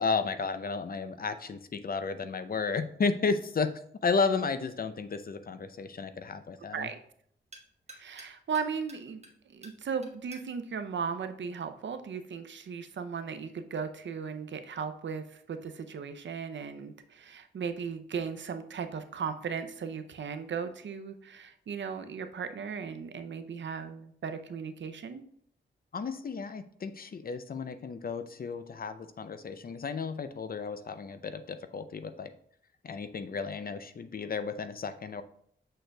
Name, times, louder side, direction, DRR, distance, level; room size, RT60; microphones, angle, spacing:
voice 1, 0.0-3.7 4.0-6.9 25.9-32.3 32.8-35.2, left 4 dB, 50° left, 11 dB, 0.5 m, -33 dB
sound 1, 7.0-12.1, right 2 dB, 35° right, 1.3 m, -57 dB
voice 2, 8.0-9.2 9.5-25.2, right 6 dB, 70° right, 9 dB, 0.6 m, -37 dB
6.5 x 6.4 x 2.3 m, 0.65 s
cardioid pair, 60°, 20 cm